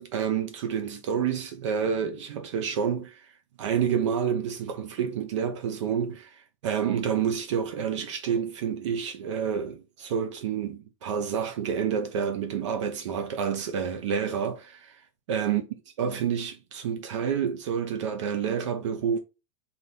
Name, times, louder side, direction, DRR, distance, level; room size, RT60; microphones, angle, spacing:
voice 1, 0.0-3.3 3.6-15.0 15.3-15.6 16.0-19.2, right 7 dB, 60° right, 0.8 m, -29 dB
4.1 x 2.8 x 3.4 m
supercardioid pair, 160°, 17 cm